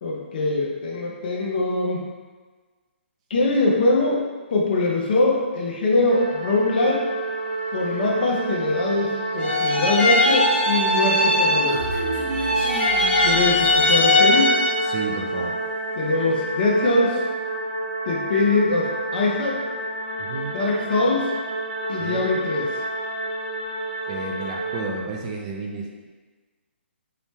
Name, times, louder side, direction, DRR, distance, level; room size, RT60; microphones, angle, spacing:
voice 1, 0.0-2.0 3.3-7.1 7.7-12.0 13.2-14.6 16.0-17.2 18.1-19.6 20.5-21.3 21.9-22.7, left 2 dB, 50° left, -2 dB, 0.6 m, -22 dB
sound 1, 6.1-24.8, right 2 dB, 65° right, 0.8 m, -30 dB
sound 2, 9.4-12.0 12.3-15.0, left 1 dB, 85° left, 0.9 m, -20 dB
Human voice, 11.3-14.1, right 2 dB, 5° right, 0.9 m, -33 dB
voice 2, 14.8-15.6 20.2-20.6 22.0-22.3 24.1-26.1, right 3 dB, 30° right, 0 dB, 0.3 m, -32 dB
2.8 x 2.1 x 3.2 m, 1.4 s
hypercardioid pair, 150°, 7 cm